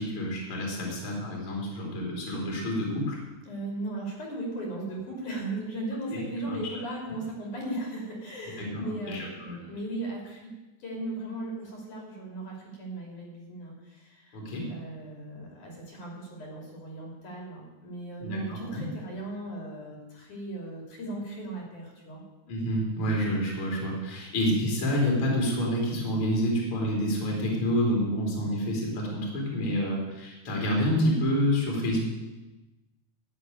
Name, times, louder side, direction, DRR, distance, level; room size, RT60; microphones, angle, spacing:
voice 1, 0.0-3.2 6.1-6.2 6.4-6.6 8.6-9.6 14.3-14.7 18.2-18.8 22.5-32.1, equal, 40° left, -2 dB, 3.8 m, -28 dB
voice 2, 3.5-10.4 10.8-14.4 14.7-22.2, right 2 dB, 65° left, -1 dB, 4.4 m, -37 dB
11.0 x 8.2 x 9.2 m, 1.1 s
omnidirectional pair, 3.9 m